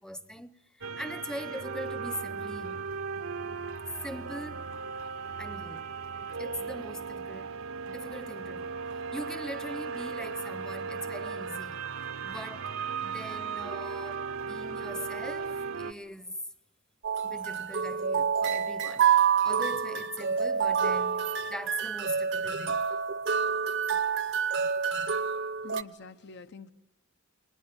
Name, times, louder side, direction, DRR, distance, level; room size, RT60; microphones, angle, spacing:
voice 1, 0.0-2.9 4.0-4.7 5.4-5.9 6.4-8.8 9.1-11.8 12.2-12.8 13.0-16.4 17.2-19.1 19.4-22.8, equal, 5° left, 0.9 m, -41 dB
sound 1, 0.8-15.9, right 5 dB, 75° right, 1.0 m, -37 dB
sound 2, 17.0-25.8, right 7 dB, 60° right, 0.9 m, -28 dB
voice 2, 25.6-26.7, left 4 dB, 55° left, 1.0 m, -46 dB
29.0 x 21.5 x 8.9 m
head